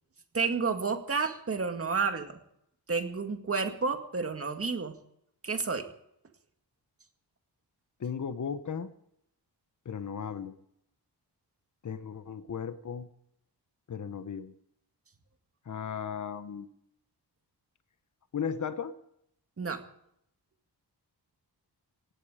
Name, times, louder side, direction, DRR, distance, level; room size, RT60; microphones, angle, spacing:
voice 1, 0.3-2.4 2.9-5.0 5.4-5.8 19.6-19.8, right 4 dB, 35° right, 6 dB, 2.0 m, -30 dB
voice 2, 8.0-8.9 9.8-10.5 11.8-13.1 13.9-14.5 15.7-16.7 18.3-18.9, left 7 dB, 45° left, 10 dB, 1.2 m, -36 dB
17.5 x 16.5 x 5.0 m, 0.74 s
wide cardioid pair, 140°, 40 cm